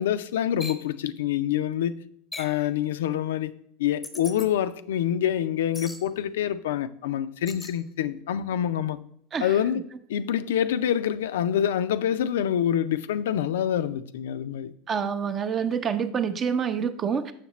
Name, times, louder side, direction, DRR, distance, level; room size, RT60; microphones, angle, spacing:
voice 1, 0.0-2.0 2.4-3.5 3.8-9.0 9.4-9.8 10.1-14.7, left 10 dB, 85° left, 0.3 m, -26 dB
sound 1, 0.6-0.9 2.3-2.6 4.0-4.5 5.7-6.0 7.5-7.8, left 2 dB, 10° left, 0.6 m, -39 dB
voice 2, 14.9-17.3, right 7 dB, 30° right, 0.5 m, -27 dB
6.4 x 5.8 x 3.0 m
supercardioid pair, 110°, 0 cm